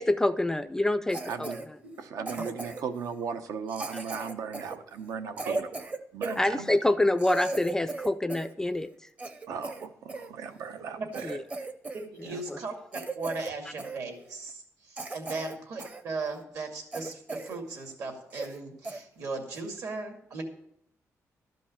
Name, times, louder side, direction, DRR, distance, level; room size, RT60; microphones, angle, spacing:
voice 1, 0.0-1.5 3.9-4.0 6.4-8.9 11.2-11.4 12.5-12.6, left 1 dB, 10° left, 13 dB, 0.3 m, -26 dB
Cough, 1.1-1.7 2.3-3.0 3.7-6.4 6.9-7.0 7.2-8.5 8.9-10.3 10.8-10.9 11.1-12.1 12.3-12.5 12.9-13.5 13.8-14.0 14.5-14.6 15.0-16.0 16.4-16.5 16.9-17.6 17.9-18.0 18.3-18.6 18.8-19.0 19.5-19.8, right 2 dB, 25° right, 0.7 m, -37 dB
voice 2, 1.3-1.6 2.0-5.7 6.1-6.6 9.5-11.3, right 6 dB, 90° right, 8 dB, 1.0 m, -37 dB
voice 3, 6.2-6.6 11.0-11.1 11.9-20.4, right 3 dB, 65° right, 3 dB, 2.3 m, -37 dB
12.5 x 5.3 x 8.5 m, 0.74 s
wide cardioid pair, 160°, 6 cm